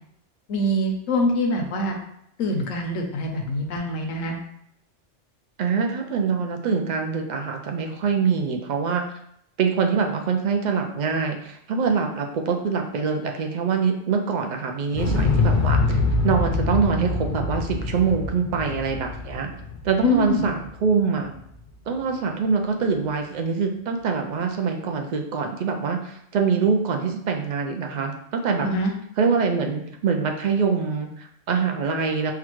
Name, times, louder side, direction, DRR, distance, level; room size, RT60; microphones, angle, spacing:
voice 1, 0.5-2.0 2.4-4.4 20.0-20.4 28.6-28.9, left 1 dB, 85° left, 2 dB, 1.1 m, -24 dB
voice 2, 5.6-9.0 9.6-19.5 19.8-21.3 21.9-28.7 29.2-32.3, right 5 dB, 75° right, 3 dB, 0.4 m, -24 dB
Explosion, 14.9-21.0 21.3-21.4, left 3 dB, 55° left, 0.6 m, -24 dB
5.7 x 2.3 x 3.0 m, 0.73 s
omnidirectional pair, 1.3 m